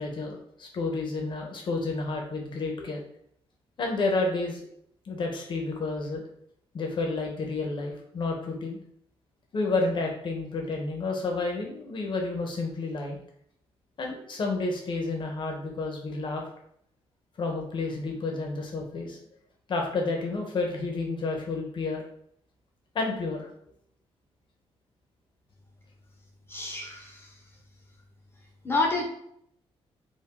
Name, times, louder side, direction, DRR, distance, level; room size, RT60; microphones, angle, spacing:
voice 1, 0.0-3.0 3.8-4.7 5.1-6.2 6.7-8.8 9.5-13.2 14.0-16.4 17.4-19.2 19.7-22.0 22.9-23.5, left 3 dB, 50° left, 1 dB, 1.1 m, -30 dB
voice 2, 26.5-27.3 28.6-29.0, left 3 dB, 20° left, 0 dB, 1.1 m, -28 dB
4.7 x 2.6 x 3.8 m, 0.69 s
cardioid pair, 145°, 11 cm